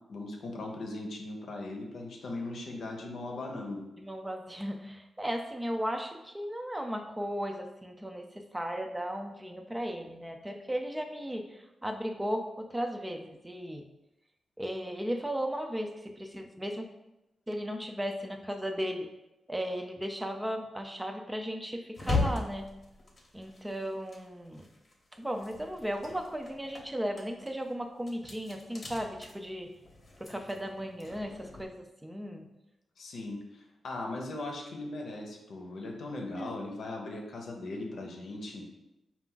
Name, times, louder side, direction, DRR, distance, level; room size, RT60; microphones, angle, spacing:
voice 1, 0.1-3.9 33.0-38.7, left 2 dB, 75° left, 1 dB, 0.7 m, -39 dB
voice 2, 4.0-13.8 14.6-16.9 17.5-19.1 19.5-22.7 23.3-24.7 25.1-29.7 30.2-32.5 36.4-36.6, equal, 15° right, 4 dB, 0.5 m, -36 dB
sound 1, 22.0-24.9 25.2-31.6, left 3 dB, 35° left, 0.9 m, -38 dB
4.4 x 2.4 x 3.8 m, 0.95 s
cardioid pair, 70°, 0 cm